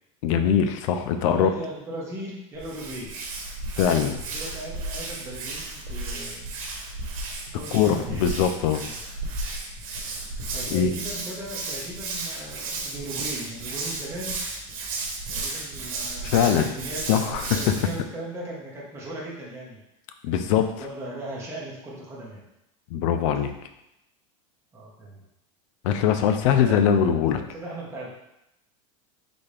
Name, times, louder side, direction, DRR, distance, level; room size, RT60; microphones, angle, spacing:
voice 1, 0.2-1.5 3.8-4.1 7.7-8.8 10.7-10.9 16.2-16.7 17.1-17.7 20.2-20.7 22.9-23.5 25.8-27.4, left 8 dB, 65° left, 8 dB, 0.5 m, -22 dB
voice 2, 1.1-3.1 4.0-6.6 7.5-8.3 8.8-9.0 10.5-14.4 15.3-19.8 20.2-22.4 24.7-25.2 26.5-27.0 27.3-28.1, right 1 dB, 15° right, -5 dB, 1.2 m, -38 dB
Hands, 2.6-18.0, right 3 dB, 80° right, 1.1 m, -34 dB
4.2 x 3.4 x 3.3 m, 0.86 s
supercardioid pair, 145°, 17 cm